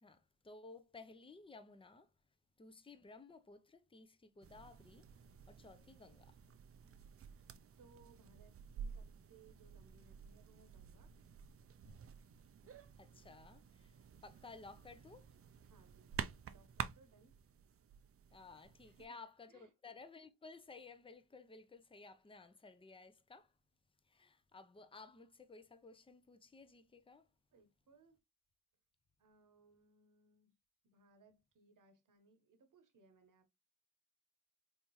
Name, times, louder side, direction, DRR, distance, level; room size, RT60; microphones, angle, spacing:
voice 1, 0.0-2.1 2.6-5.1 5.5-6.3 12.6-13.9 14.2-15.3 18.3-23.5 24.1-27.3, left 3 dB, 15° left, 0.6 m, -56 dB
sound 1, 4.4-19.1, right 7 dB, 40° right, 0.4 m, -51 dB
voice 2, 7.8-11.2 15.6-17.4 18.8-19.2 19.5-19.7 27.5-28.2 29.2-30.5 30.8-33.5, right 3 dB, 60° right, 1.0 m, -67 dB
3.5 x 2.7 x 2.9 m
cardioid pair, 50°, 36 cm